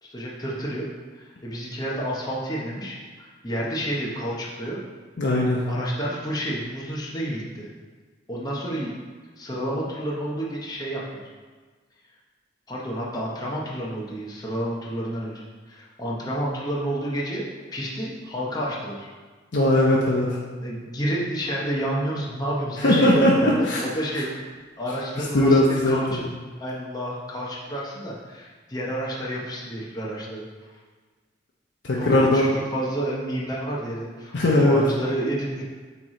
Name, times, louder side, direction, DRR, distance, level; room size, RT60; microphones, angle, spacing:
voice 1, 0.0-0.8 1.1-4.8 5.7-7.7 8.3-9.0 9.4-11.2 12.7-17.4 17.7-19.1 20.6-24.5 24.8-26.2 26.6-30.5 32.0-35.6, right 1 dB, 20° left, -4 dB, 0.9 m, -30 dB
voice 2, 5.2-5.7 19.5-20.4 22.8-23.8 25.2-26.2 31.8-32.5 34.3-34.8, left 1 dB, 70° left, -4 dB, 0.8 m, -19 dB
8.3 x 3.2 x 3.7 m, 1.4 s
head